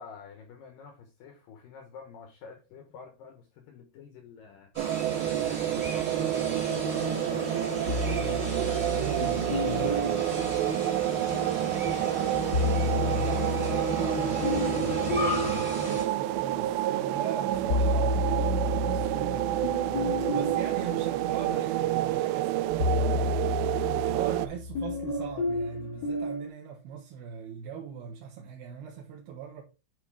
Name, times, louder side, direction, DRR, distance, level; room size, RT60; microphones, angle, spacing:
voice 1, 0.0-8.1 8.5-11.3, left 6 dB, 80° left, 2.0 m, -48 dB
sound 1, 4.7-16.0, left 1 dB, 25° right, 1.0 m, -35 dB
sound 2, 4.8-24.5, right 14 dB, 85° right, 2.5 m, -29 dB
sound 3, 7.9-11.4 12.3-16.8 17.2-26.5, left 3 dB, 55° left, 1.2 m, -32 dB
voice 2, 9.0-9.4 12.8-20.0 20.3-29.6, right 8 dB, 70° right, 2.6 m, -41 dB
11.0 x 4.7 x 3.5 m
omnidirectional pair, 5.6 m